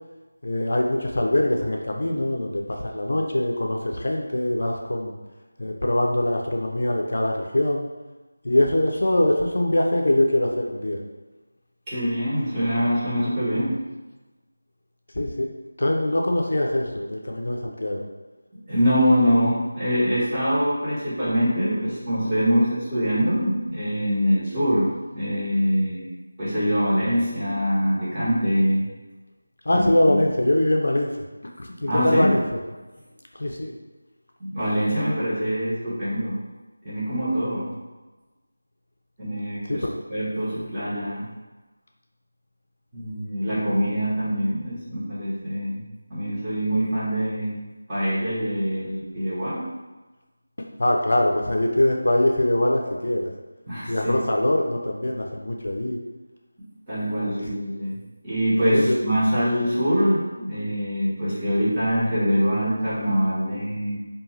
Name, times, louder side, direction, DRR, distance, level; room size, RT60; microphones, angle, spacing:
voice 1, 0.4-5.2 5.6-7.9 8.4-11.0 15.1-15.5 15.8-18.0 29.6-31.2 31.6-32.6 33.3-33.7 39.7-39.9 43.5-43.6 50.6-53.3 53.9-56.0 58.7-59.0, left 1 dB, 65° left, 1 dB, 0.4 m, -23 dB
voice 2, 11.9-13.9 18.5-26.1 26.4-28.9 29.7-30.2 31.8-32.3 34.4-36.4 36.8-37.7 39.2-41.3 42.9-45.8 46.1-47.6 47.9-49.7 53.7-54.1 56.9-58.0 58.2-64.0, equal, 15° right, -12 dB, 0.9 m, -24 dB
2.5 x 2.3 x 3.1 m, 1.2 s
figure-of-eight pair, 170°, 0 cm